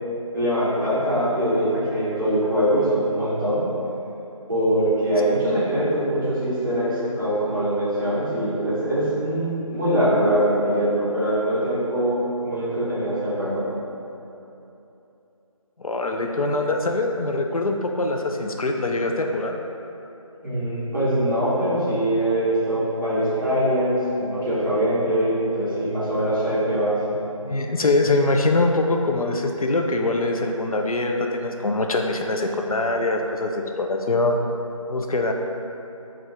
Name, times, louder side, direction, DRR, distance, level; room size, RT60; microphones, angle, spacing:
voice 1, 0.3-3.7 4.5-13.7 20.4-27.2, right 1 dB, 35° right, -11 dB, 1.1 m, -23 dB
voice 2, 15.8-19.6 27.4-34.4 34.9-35.3, left 2 dB, 85° left, 3 dB, 0.4 m, -23 dB
4.2 x 2.4 x 3.3 m, 2.9 s
figure-of-eight pair, 175°, 18 cm